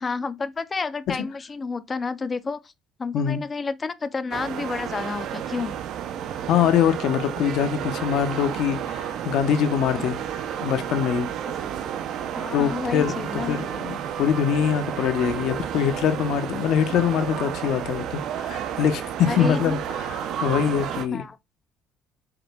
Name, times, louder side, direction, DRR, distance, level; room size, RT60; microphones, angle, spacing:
voice 1, 0.0-2.7 3.0-5.7 11.6-12.0 12.3-13.6 19.3-20.0 21.1-21.4, left 4 dB, 25° left, 0.3 m, -30 dB
sound 1, 4.3-21.1, right 9 dB, 65° right, 0.4 m, -31 dB
voice 2, 6.5-10.2 10.6-11.3 12.5-13.1 13.5-19.8 20.1-21.2, left 8 dB, 70° left, 0.6 m, -23 dB
4.9 x 2.2 x 3.2 m
cardioid pair, 135°, 0 cm